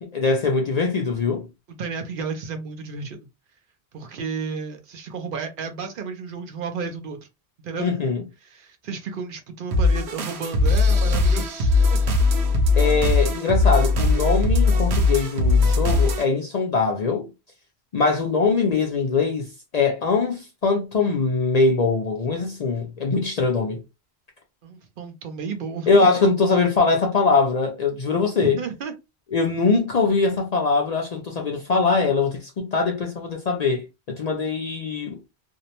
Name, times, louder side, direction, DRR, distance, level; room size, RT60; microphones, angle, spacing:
voice 1, 0.0-1.5 7.8-8.2 12.8-17.3 17.9-23.8 25.9-28.6 29.3-35.2, left 4 dB, 55° left, 0.5 m, -22 dB
voice 2, 1.8-3.2 3.9-7.2 7.6-7.9 8.4-12.0 24.6-25.9 28.4-28.9, right 5 dB, 60° right, 0.7 m, -32 dB
sound 1, 9.7-16.2, left 3 dB, 90° right, 0.9 m, -19 dB
2.5 x 2.0 x 2.8 m
omnidirectional pair, 1.1 m